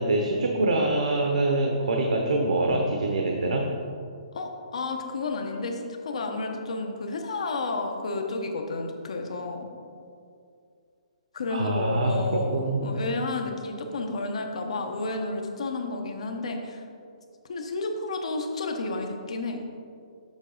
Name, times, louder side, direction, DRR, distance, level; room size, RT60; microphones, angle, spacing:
voice 1, 0.0-3.7 11.5-12.1 12.5-13.0, right 2 dB, 85° right, 1 dB, 0.8 m, -25 dB
voice 2, 4.3-9.7 11.3-16.8 17.5-19.6, left 3 dB, 60° left, 4 dB, 0.9 m, -31 dB
7.2 x 5.3 x 3.9 m, 2.4 s
hypercardioid pair, 175°, 4 cm